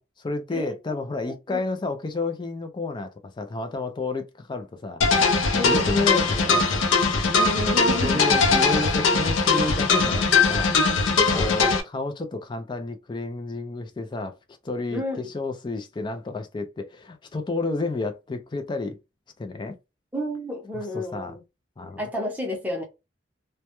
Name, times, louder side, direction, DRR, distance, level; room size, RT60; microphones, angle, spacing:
voice 1, 0.0-5.2 5.6-6.7 8.0-10.7 11.3-14.4 14.6-19.0 19.4-19.8 20.7-21.4 21.8-22.0, left 3 dB, 25° left, 0.3 m, -31 dB
voice 2, 1.2-1.6 5.5-5.9 7.3-8.3 11.3-11.5 14.9-15.3 20.1-21.4 22.0-22.8, left 1 dB, 10° right, 0.7 m, -31 dB
sound 1, 5.0-11.8, left 4 dB, 85° left, 0.5 m, -21 dB
2.2 x 2.1 x 2.8 m
head